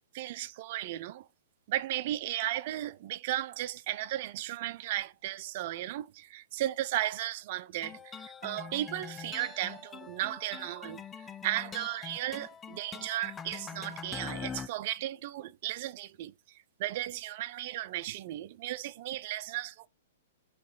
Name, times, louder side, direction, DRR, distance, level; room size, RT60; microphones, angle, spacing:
voice 1, 0.1-1.3 1.7-16.3 16.8-19.9, right 14 dB, 50° right, 0.5 m, -35 dB
sound 1, 7.8-14.7, left 6 dB, 20° left, 0.5 m, -43 dB
5.9 x 3.1 x 5.5 m
hypercardioid pair, 125°, 0 cm